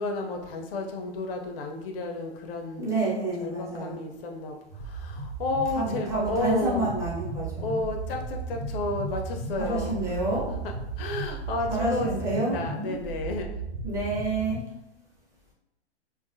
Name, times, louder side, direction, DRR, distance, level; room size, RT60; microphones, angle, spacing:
voice 1, 0.0-3.0 3.4-6.9 7.6-10.0 10.5-10.6 11.0-13.5, left 2 dB, 55° left, 3 dB, 0.5 m, -32 dB
voice 2, 2.8-4.0 5.8-7.7 9.6-10.5 11.7-12.6 13.8-14.6, right 2 dB, 10° right, -6 dB, 0.6 m, -28 dB
sound 1, 4.7-14.6, right 3 dB, 60° right, 0.7 m, -35 dB
2.4 x 2.3 x 2.5 m, 0.88 s
hypercardioid pair, 115°, 34 cm